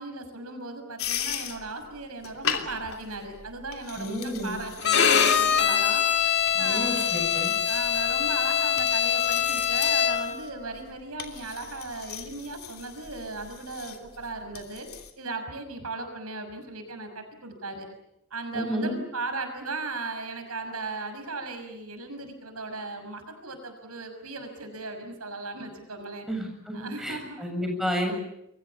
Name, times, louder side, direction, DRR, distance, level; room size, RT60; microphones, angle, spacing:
voice 1, 0.0-7.2 7.7-14.9 15.2-17.9 18.3-26.3 26.7-27.5, right 3 dB, 85° right, 7 dB, 6.3 m, -37 dB
sound 1, 1.0-15.1, left 8 dB, 75° left, 3.2 m, -38 dB
voice 2, 4.0-4.6 6.5-7.5 18.5-19.0 26.3-28.1, equal, ahead, 2 dB, 7.6 m, -31 dB
Bowed string instrument, 4.8-10.4, left 8 dB, 50° left, 2.2 m, -23 dB
29.0 x 23.5 x 7.1 m, 0.82 s
head